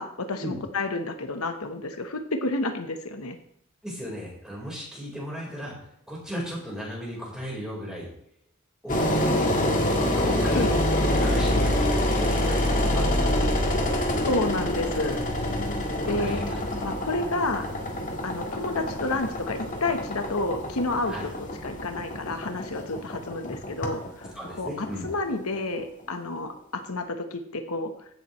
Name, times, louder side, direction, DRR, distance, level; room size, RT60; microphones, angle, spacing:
voice 1, 0.0-3.4 10.5-10.8 14.3-15.2 16.1-16.4 16.8-17.7 18.2-21.3 21.6-24.3 24.6-27.9, left 2 dB, 90° left, 6 dB, 1.2 m, -30 dB
voice 2, 3.8-5.7 6.1-8.1 8.8-13.4 16.0-16.6 21.1-21.2 24.3-25.1, equal, 5° right, -5 dB, 4.4 m, -36 dB
Engine, 8.9-25.8, left 1 dB, 35° left, 1.6 m, -26 dB
15.5 x 7.6 x 3.2 m, 0.71 s
head